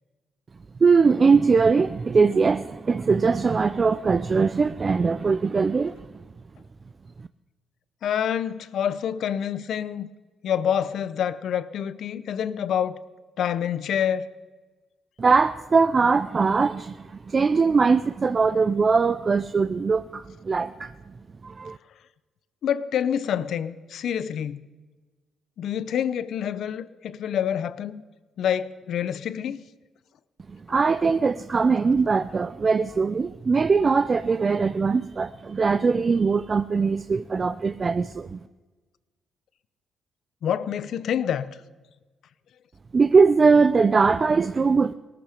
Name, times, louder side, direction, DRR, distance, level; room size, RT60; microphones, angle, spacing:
voice 1, 0.8-6.1 15.2-20.9 21.4-21.8 30.5-38.4 42.9-44.9, right 4 dB, 35° right, 0.4 m, -21 dB
voice 2, 8.0-10.1 10.4-13.0 13.4-14.3 22.6-24.6 25.6-28.0 28.4-29.6 40.4-41.6, left 9 dB, 70° left, 0.7 m, -27 dB
18.5 x 14.0 x 5.1 m
cardioid pair, 90°, 0 cm